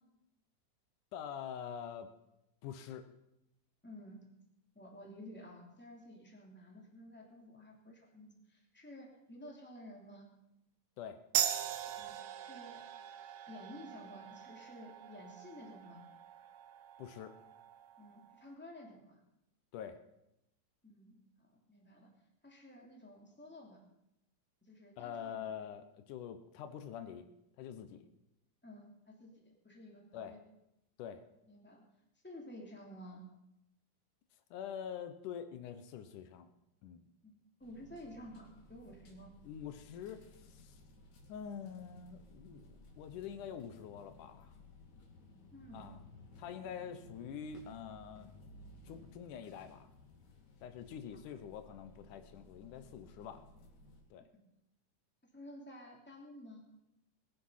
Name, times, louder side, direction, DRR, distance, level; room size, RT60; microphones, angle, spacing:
voice 1, 1.1-2.1 2.6-3.1 11.0-11.2 17.0-17.3 19.7-20.0 25.0-27.2 27.6-28.0 30.1-30.3 31.0-31.2 34.5-36.5 36.8-37.0 39.4-40.8 41.3-44.5 45.7-46.0 46.4-48.3 48.9-49.9 50.6-53.4 54.1-54.3, left 8 dB, 85° left, 9 dB, 2.5 m, -45 dB
voice 2, 3.8-4.3 4.7-10.3 12.0-12.8 13.5-16.0 18.0-19.2 20.8-22.1 22.4-23.8 24.7-25.5 28.6-30.4 31.5-31.9 32.2-33.3 37.2-39.3 45.5-45.9 51.1-51.2 55.3-56.6, left 1 dB, 5° left, -1 dB, 2.7 m, -52 dB
sound 1, 11.3-18.4, right 10 dB, 70° right, 1.9 m, -41 dB
sound 2, 37.6-54.0, left 2 dB, 65° left, 3.9 m, -58 dB
20.0 x 10.0 x 5.7 m, 0.86 s
omnidirectional pair, 3.5 m